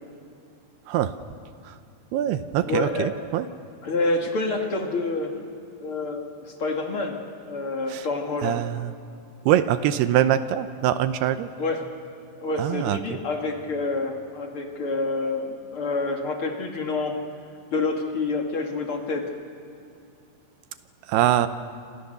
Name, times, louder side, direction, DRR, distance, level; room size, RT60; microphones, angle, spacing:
voice 1, 2.1-3.5 7.9-8.1 8.4-8.9 9.5-11.5 12.6-13.0 21.1-21.5, right 11 dB, 80° right, 11 dB, 2.6 m, -23 dB
voice 2, 2.7-3.1 3.8-5.3 5.8-7.2 7.5-8.6 11.6-11.8 12.4-17.2 17.7-19.3, left 3 dB, 40° left, 2 dB, 2.2 m, -27 dB
27.5 x 27.0 x 6.7 m, 2.6 s
omnidirectional pair, 4.9 m